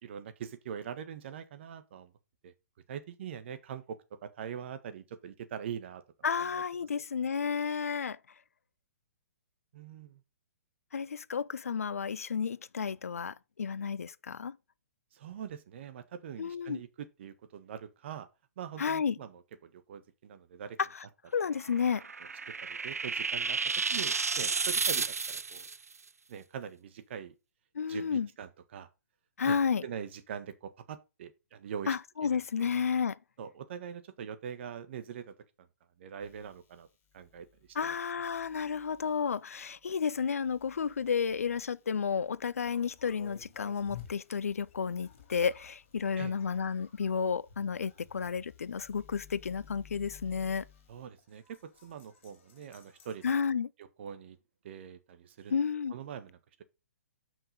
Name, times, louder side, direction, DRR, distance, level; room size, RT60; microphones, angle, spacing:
voice 1, 0.0-2.1 2.4-2.5 2.9-6.0 6.4-6.6 9.7-10.2 15.1-18.3 18.6-20.8 22.7-25.6 26.3-27.3 27.9-28.9 29.4-31.9 32.6-32.7 33.4-35.3 36.0-36.9 37.1-37.5 37.8-37.9 46.2-46.3 50.9-53.2 54.0-54.4 54.6-55.5 55.9-56.6, right 8 dB, 50° right, 1.4 m, -43 dB
voice 2, 6.2-8.2 10.9-14.6 16.4-16.8 18.8-19.2 20.8-21.0 21.3-22.1 27.7-28.3 29.4-29.9 31.9-33.2 37.7-50.6 53.2-53.7 55.5-55.9, left 6 dB, 75° left, 0.5 m, -32 dB
sound 1, 21.6-25.8, right 5 dB, 85° right, 0.5 m, -32 dB
sound 2, 36.2-44.5 45.0-51.1, left 8 dB, 25° left, 2.4 m, -60 dB
sound 3, 42.6-53.3, left 8 dB, 55° left, 3.1 m, -55 dB
7.5 x 6.0 x 5.4 m
figure-of-eight pair, 125°, 8 cm